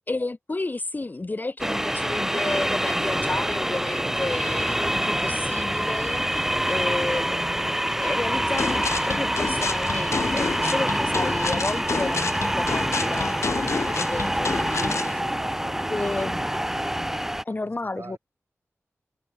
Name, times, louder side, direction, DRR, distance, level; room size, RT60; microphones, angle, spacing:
voice 1, 0.1-15.2 15.9-16.4 17.4-18.2, left 2 dB, 35° left, 0.7 m, -32 dB
sound 1, 1.6-17.4, equal, 5° right, 0.9 m, -26 dB
voice 2, 5.7-6.0 15.2-16.4 17.5-18.2, right 4 dB, 60° right, 6.1 m, -46 dB
sound 2, 8.6-15.1, left 4 dB, 65° left, 1.5 m, -29 dB
cardioid pair, 45°, 5 cm